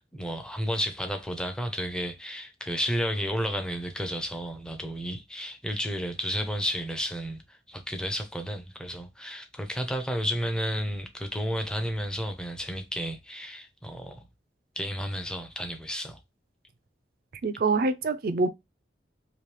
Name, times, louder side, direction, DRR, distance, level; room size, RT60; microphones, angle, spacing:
voice 1, 0.0-14.2 14.8-16.2, equal, 5° left, 0.6 m, -32 dB
voice 2, 17.4-18.5, right 3 dB, 55° right, 0.4 m, -25 dB
3.0 x 2.8 x 3.2 m
head